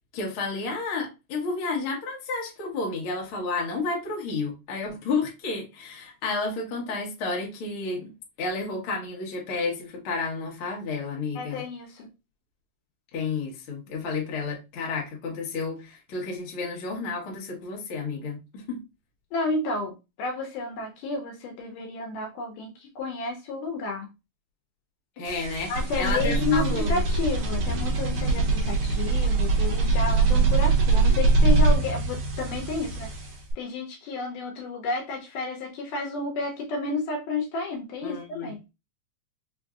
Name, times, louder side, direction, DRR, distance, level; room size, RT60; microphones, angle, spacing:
voice 1, 0.1-8.1 8.4-11.6 13.1-18.8 25.2-27.0 38.0-38.5, left 3 dB, 60° left, 1.4 m, -31 dB
voice 2, 11.4-12.1 19.3-24.1 25.7-33.1 33.6-38.6, left 3 dB, 75° left, 2.1 m, -31 dB
sound 1, 25.2-33.5, right 3 dB, 65° right, 1.7 m, -23 dB
5.2 x 2.6 x 2.3 m
omnidirectional pair, 4.0 m